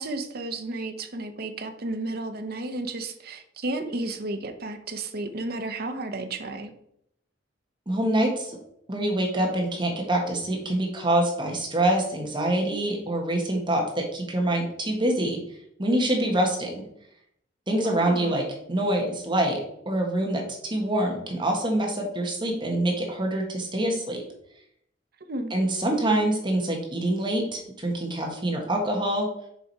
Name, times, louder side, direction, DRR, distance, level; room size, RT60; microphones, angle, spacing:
voice 1, 0.0-6.7 17.8-18.4 25.2-25.5, right 2 dB, 55° right, 6 dB, 0.9 m, -33 dB
voice 2, 7.9-8.6 8.9-15.4 15.8-16.8 17.7-19.6 19.8-24.2 25.5-29.3, right 1 dB, 25° right, 1 dB, 1.5 m, -25 dB
6.8 x 5.0 x 4.6 m, 0.73 s
head